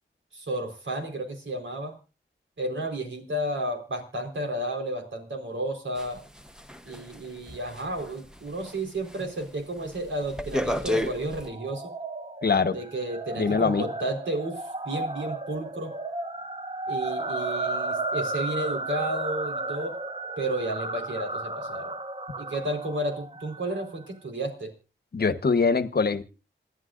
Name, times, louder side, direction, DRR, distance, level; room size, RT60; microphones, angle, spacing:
voice 1, 0.3-2.0 2.6-6.2 6.8-11.9 12.7-15.9 16.9-19.9 20.4-21.9 22.4-24.7, right 1 dB, 75° right, 3 dB, 4.3 m, -32 dB
sound 1, 6.0-8.8 9.1-9.4 9.8-11.5, left 1 dB, 5° right, 1.0 m, -32 dB
sound 2, 11.4-23.9, right 2 dB, 30° right, 1.3 m, -34 dB
voice 2, 12.4-12.8 13.4-13.9 25.1-26.2, left 5 dB, 50° left, 11 dB, 1.2 m, -23 dB
28.0 x 11.0 x 2.6 m, 0.32 s
wide cardioid pair, 85°, 20 cm